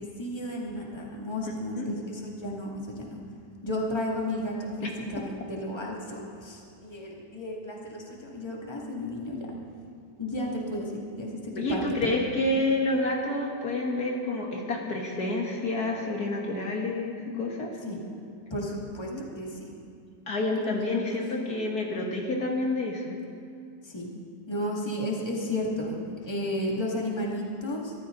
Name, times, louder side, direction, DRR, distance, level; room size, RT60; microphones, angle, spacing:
voice 1, 0.2-3.2 3.6-9.4 10.2-12.2 17.8-18.0 18.5-19.7 23.8-24.1 24.5-27.9, left 1 dB, 15° left, -3 dB, 2.3 m, -33 dB
voice 2, 11.6-17.8 19.1-19.3 20.3-23.2, left 2 dB, 60° left, 0 dB, 2.0 m, -29 dB
24.0 x 14.0 x 3.9 m, 2.5 s
omnidirectional pair, 1.9 m